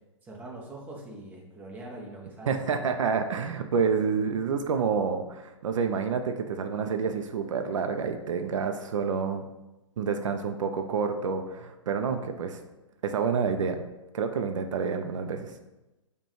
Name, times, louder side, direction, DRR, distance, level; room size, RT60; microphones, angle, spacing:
voice 1, 0.2-2.9, right 1 dB, 10° right, -2 dB, 0.7 m, -43 dB
voice 2, 2.5-9.4 10.0-12.6 13.0-13.8 14.1-15.5, right 6 dB, 75° right, 6 dB, 0.4 m, -28 dB
5.3 x 2.2 x 3.1 m, 1.0 s
hypercardioid pair, 130°, 16 cm